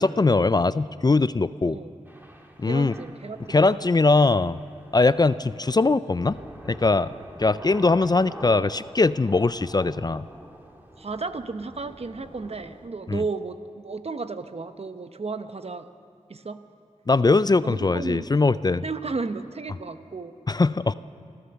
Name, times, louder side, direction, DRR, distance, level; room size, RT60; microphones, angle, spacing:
voice 1, 0.0-1.8 2.6-2.9 3.5-4.6 4.9-6.4 6.6-7.1 7.4-10.2 13.1-13.2 17.1-18.8 20.5-20.9, left 3 dB, 30° left, 16 dB, 0.4 m, -21 dB
voice 2, 1.6-1.9 2.6-4.0 11.0-15.9 16.3-16.6 17.6-18.3 18.8-20.3, right 4 dB, 55° right, 10 dB, 0.9 m, -33 dB
Thunder / Rain, 2.1-12.9, equal, 15° right, 2.2 m, -46 dB
25.5 x 14.5 x 7.0 m, 2.4 s
wide cardioid pair, 60°, 13 cm